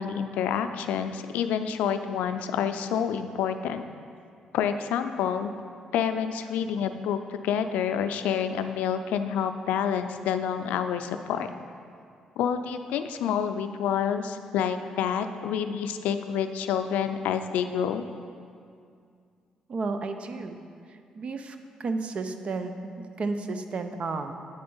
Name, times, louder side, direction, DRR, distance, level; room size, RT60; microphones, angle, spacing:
voice 1, 0.0-3.8 4.5-5.5 5.9-11.5 12.4-18.1, left 8 dB, 90° left, 9 dB, 0.3 m, -28 dB
voice 2, 19.7-20.6 20.9-24.3, right 3 dB, 50° right, 7 dB, 0.6 m, -32 dB
8.7 x 4.3 x 5.4 m, 2.3 s
cardioid pair, 75°, 2 cm